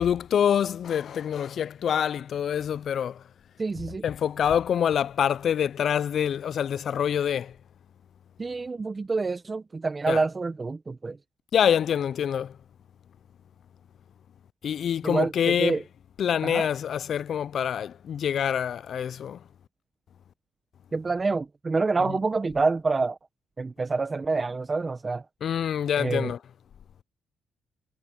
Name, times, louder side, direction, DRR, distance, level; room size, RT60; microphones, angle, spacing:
voice 1, 0.0-3.2 4.0-7.5 10.1-10.2 11.5-12.5 14.6-15.8 16.2-19.4 25.4-26.4, left 8 dB, 60° left, 0.4 m, -26 dB
voice 2, 3.6-4.0 8.4-11.2 15.0-15.8 16.4-16.7 20.9-23.2 23.6-25.2 26.0-26.3, right 3 dB, 30° right, 1.1 m, -27 dB
cardioid pair, 90°, 0 cm